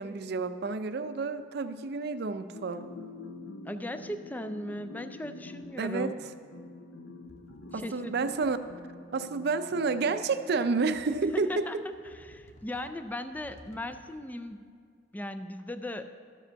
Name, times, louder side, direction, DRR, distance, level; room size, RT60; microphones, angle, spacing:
voice 1, 0.0-2.9 5.8-6.1 7.7-8.6 9.1-11.7, right 4 dB, 55° right, 11 dB, 0.5 m, -30 dB
sound 1, 2.5-11.3, left 2 dB, 65° left, 0.5 m, -47 dB
voice 2, 3.7-6.2 7.7-8.3 11.3-14.7 15.1-16.1, left 1 dB, 10° left, 9 dB, 0.3 m, -38 dB
sound 2, 7.2-8.0 8.3-9.0 9.9-10.0 10.9-11.6 11.9-14.3, equal, 40° left, 0.8 m, -57 dB
13.5 x 5.2 x 6.2 m, 2.2 s
head